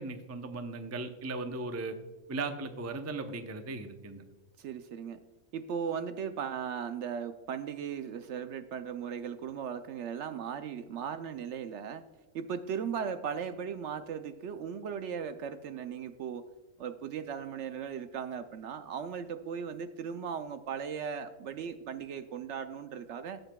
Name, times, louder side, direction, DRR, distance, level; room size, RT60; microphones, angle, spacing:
voice 1, 0.0-2.0 2.3-4.2, right 3 dB, 20° right, 6 dB, 0.4 m, -37 dB
voice 2, 4.6-5.2 5.5-12.0 12.3-16.5 16.8-23.4, right 7 dB, 65° right, 10 dB, 0.8 m, -37 dB
15.0 x 7.9 x 2.3 m, 1.2 s
omnidirectional pair, 1.4 m